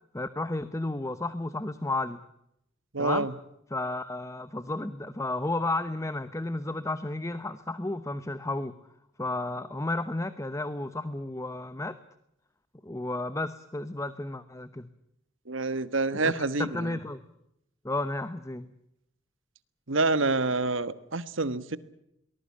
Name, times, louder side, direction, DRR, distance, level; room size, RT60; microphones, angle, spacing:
voice 1, 0.1-2.2 3.0-3.3 3.7-8.7 9.2-11.9 12.8-14.9 16.2-17.2 17.8-18.7, left 2 dB, 15° left, 13 dB, 0.9 m, -32 dB
voice 2, 2.9-3.3 15.5-17.0 19.9-21.8, right 3 dB, 70° right, 15 dB, 1.4 m, -27 dB
23.5 x 19.5 x 8.5 m, 0.80 s
head